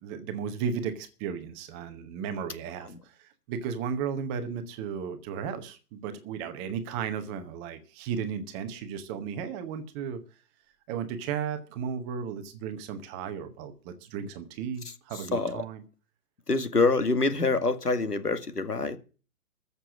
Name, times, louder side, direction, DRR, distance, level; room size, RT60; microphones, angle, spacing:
voice 1, 0.0-10.2 10.9-15.8, right 7 dB, 15° right, 0.8 m, -35 dB
voice 2, 14.8-15.6 16.5-19.0, left 3 dB, 80° left, 2.3 m, -26 dB
14.5 x 6.8 x 8.0 m
figure-of-eight pair, 130°, 47 cm